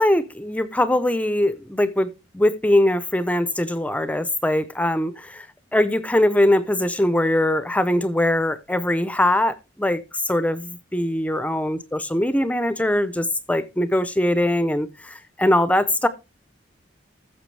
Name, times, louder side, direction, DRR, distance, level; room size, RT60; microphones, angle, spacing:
voice 1, 0.0-5.5 5.7-16.1, left 1 dB, 10° left, 0.6 m, -21 dB
14.5 x 6.8 x 3.3 m
head